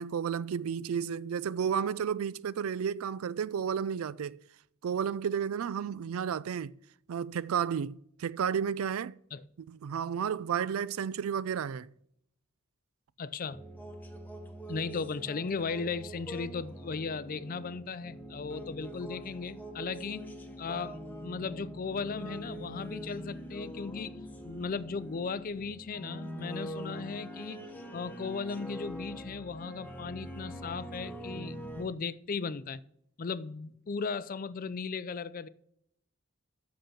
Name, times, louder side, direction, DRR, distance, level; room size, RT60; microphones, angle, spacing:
voice 1, 0.0-4.4 4.8-6.7 7.1-9.2 9.7-11.9, right 7 dB, 75° right, 0.4 m, -32 dB
voice 2, 13.2-13.6 14.7-32.8 33.2-35.5, left 5 dB, 40° left, 0.4 m, -37 dB
sound 1, 13.5-31.8, equal, 10° left, 1.0 m, -43 dB
7.8 x 6.7 x 5.8 m
head